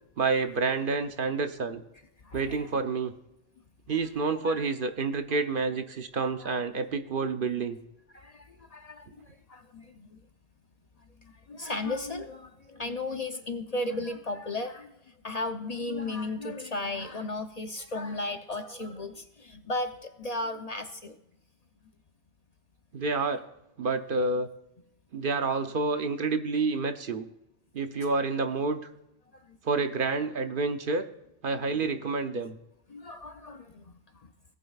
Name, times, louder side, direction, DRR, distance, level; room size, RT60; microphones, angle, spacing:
voice 1, 0.2-1.8 2.3-3.1 3.9-7.8 22.9-23.4 23.8-24.5 25.1-27.3 27.7-28.8 29.6-31.0 31.4-32.6, right 4 dB, 55° right, 8 dB, 0.9 m, -28 dB
voice 2, 2.2-2.7 4.1-4.6 5.3-5.4 6.4-6.6 8.1-10.2 11.5-14.9 15.2-21.2 29.3-29.6 32.9-34.3, left 2 dB, 45° left, 6 dB, 0.7 m, -35 dB
17.5 x 8.7 x 2.4 m, 0.85 s
omnidirectional pair, 1.1 m